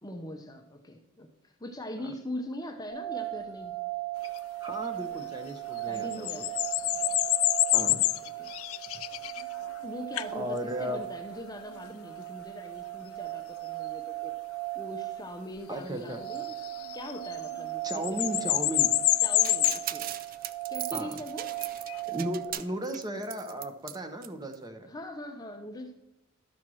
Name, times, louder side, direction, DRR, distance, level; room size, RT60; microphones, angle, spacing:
voice 1, 0.0-3.8 5.8-7.3 8.2-8.5 9.8-14.3 14.7-16.5 16.9-17.8 18.1-18.6 19.2-20.1 20.7-21.5 22.5-22.6 24.8-25.9, left 1 dB, 20° left, 5 dB, 0.6 m, -41 dB
sound 1, 2.9-22.5, right 18 dB, 90° right, 1.5 m, -38 dB
sound 2, 4.2-4.4 5.8-9.8 10.2-10.4 11.8-11.9 16.3-17.6 17.9-19.9 21.6-22.0, left 17 dB, 80° left, 0.4 m, -27 dB
voice 2, 4.6-6.4 7.7-8.0 10.3-11.0 15.7-16.2 17.8-18.9 20.9-21.2 22.1-24.9, equal, 20° right, 6 dB, 0.9 m, -35 dB
sound 3, 19.4-24.0 24.2-24.3 24.5-24.6, right 11 dB, 40° right, 0.4 m, -38 dB
12.0 x 4.5 x 6.2 m, 0.84 s
head